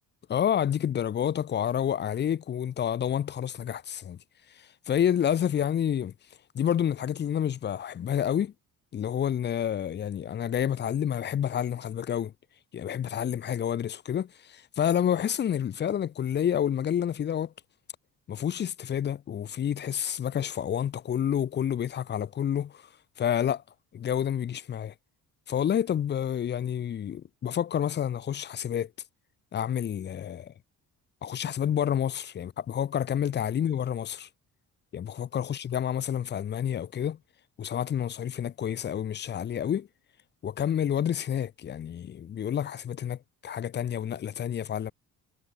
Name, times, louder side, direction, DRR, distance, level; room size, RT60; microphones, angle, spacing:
voice 1, 0.3-4.2 4.9-6.1 6.5-8.5 8.9-12.3 12.7-17.5 18.3-22.8 23.2-23.6 23.9-24.9 25.5-28.9 29.5-30.5 31.2-34.3 34.9-37.2 37.6-39.9 40.4-44.9, left 9 dB, 30° left, 0.7 m, -29 dB
cardioid pair, 175°, 35 cm